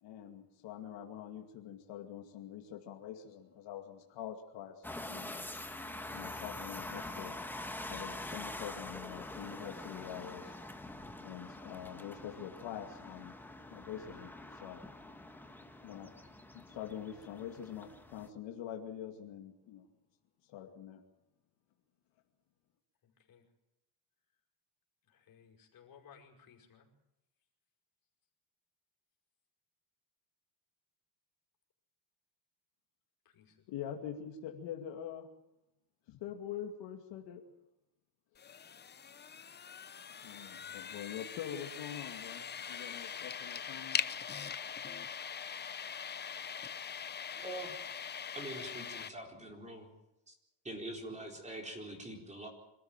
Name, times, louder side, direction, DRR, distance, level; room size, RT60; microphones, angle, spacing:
voice 1, 0.0-5.5 6.1-7.4 7.9-10.5 11.2-13.4 13.7-14.8 15.8-16.1 16.5-19.9 20.5-21.0 33.7-35.3 36.1-37.4 40.2-44.0, left 9 dB, 70° left, 3 dB, 2.4 m, -45 dB
sound 1, 4.8-18.3, left 1 dB, 5° left, 1.4 m, -45 dB
voice 2, 23.0-23.4 25.0-26.9 33.3-34.0 40.4-41.0, left 7 dB, 50° left, 1 dB, 5.4 m, -61 dB
sound 2, 38.4-49.1, left 7 dB, 25° left, 0.7 m, -42 dB
voice 3, 47.3-47.7 48.3-49.9 50.3-50.4 50.6-52.5, right 1 dB, 15° right, 2 dB, 4.2 m, -44 dB
26.0 x 14.0 x 8.9 m, 0.91 s
cardioid pair, 135°, 45 cm